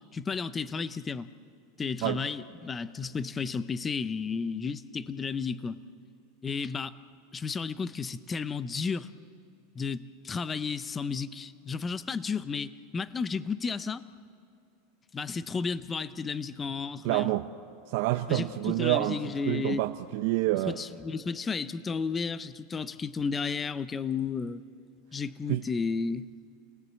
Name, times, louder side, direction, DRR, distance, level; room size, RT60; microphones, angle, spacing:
voice 1, 0.0-1.3 1.8-5.8 6.4-7.0 7.3-9.1 9.7-14.0 15.1-17.3 18.3-19.9 20.7-24.6 25.1-26.3, left 5 dB, 20° left, 0.6 m, -33 dB
voice 2, 17.0-17.5 17.9-20.8 25.5-25.6, right 17 dB, 60° right, 0.7 m, -28 dB
28.5 x 19.0 x 7.6 m
supercardioid pair, 130°, 0 cm